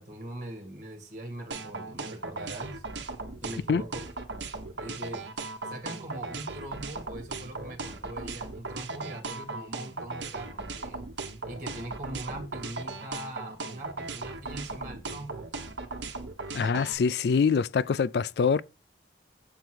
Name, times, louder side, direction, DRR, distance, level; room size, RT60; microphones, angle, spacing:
voice 1, 0.0-2.8 3.4-4.0 4.8-5.3 5.6-11.0 11.5-15.5, right 1 dB, 45° right, 2.3 m, -41 dB
sound 1, 1.5-16.9, right 3 dB, 80° right, 1.2 m, -37 dB
voice 2, 16.5-18.6, left 5 dB, 60° left, 0.3 m, -24 dB
7.0 x 4.5 x 6.1 m
head